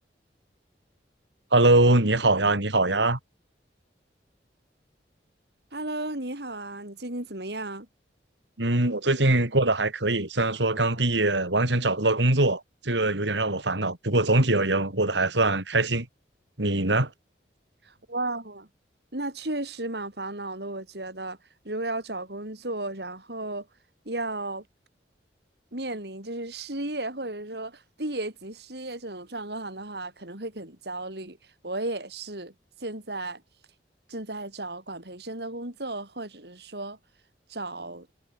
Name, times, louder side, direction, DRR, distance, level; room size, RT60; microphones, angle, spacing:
voice 1, 1.5-3.2 8.6-16.1 16.6-17.1, right 2 dB, 85° right, 3.8 m, -22 dB
voice 2, 5.7-7.9 17.8-18.7 19.1-21.4 21.6-23.7 24.0-24.6 25.7-31.4 31.6-32.5 32.8-33.4 34.1-37.0 37.5-38.1, right 2 dB, 65° right, 4.5 m, -34 dB
head